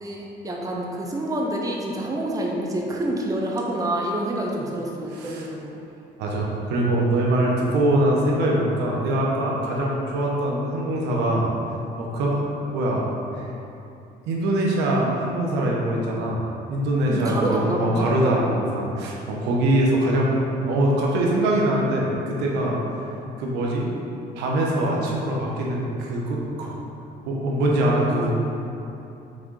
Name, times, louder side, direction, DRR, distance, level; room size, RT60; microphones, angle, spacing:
voice 1, 0.0-5.7 17.1-18.4, right 1 dB, 20° right, -1 dB, 0.8 m, -27 dB
voice 2, 5.1-5.5 6.2-11.5 12.0-13.1 13.4-13.5 14.3-16.4 16.7-20.4 20.6-22.8 23.4-23.9 24.3-26.8 27.3-28.3, right 1 dB, 90° right, -3 dB, 1.1 m, -23 dB
6.3 x 3.8 x 4.7 m, 2.9 s
cardioid pair, 110°, 17 cm